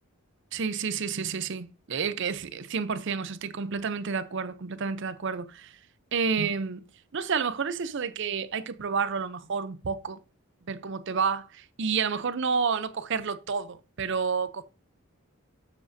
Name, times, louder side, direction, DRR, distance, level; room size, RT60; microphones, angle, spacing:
voice 1, 0.5-5.8 6.1-6.9 7.1-10.2 10.7-14.6, right 5 dB, 55° right, 0.6 m, -30 dB
7.5 x 7.2 x 2.7 m
head